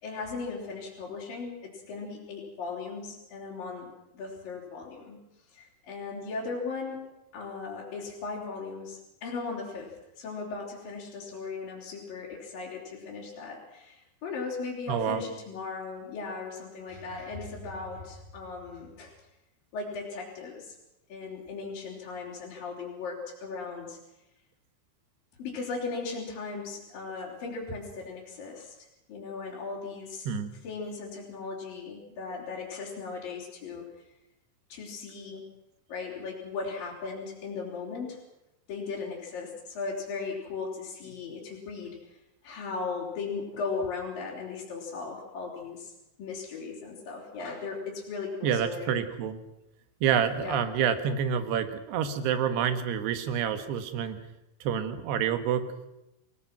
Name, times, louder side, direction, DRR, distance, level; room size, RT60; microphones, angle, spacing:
voice 1, 0.0-5.2 5.5-7.1 7.3-19.1 19.7-20.8 21.1-24.0 25.4-30.3 30.6-33.8 34.7-35.5 35.9-38.2 38.7-42.0 42.4-45.9 46.2-49.0 50.4-50.6, left 4 dB, 60° left, -6 dB, 5.3 m, -37 dB
voice 2, 14.9-15.2 30.3-30.5 48.4-49.4 50.0-54.2 54.6-55.9, right 8 dB, 80° right, 9 dB, 3.6 m, -28 dB
27.0 x 18.5 x 6.1 m, 0.92 s
omnidirectional pair, 4.7 m